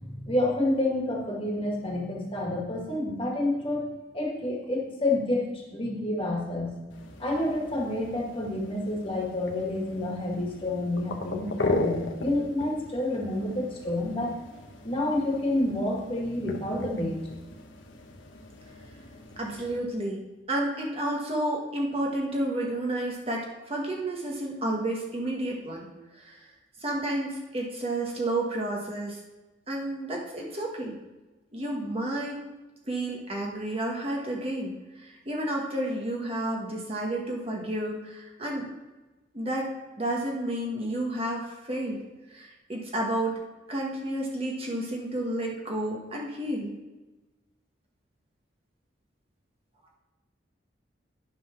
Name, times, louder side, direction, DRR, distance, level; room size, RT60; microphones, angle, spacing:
voice 1, 0.0-3.8 4.1-6.7 7.2-14.3 14.8-17.2, left 1 dB, 30° left, -2 dB, 1.8 m, -29 dB
sound 1, 6.9-19.8, left 2 dB, 85° left, 1.1 m, -37 dB
voice 2, 19.4-25.9 26.2-26.4 26.8-29.2 29.7-31.0 31.5-32.4 32.9-38.7 39.3-42.0 42.3-43.4 43.7-46.7, right 1 dB, 30° right, -2 dB, 1.3 m, -31 dB
10.5 x 3.9 x 5.8 m, 1.1 s
head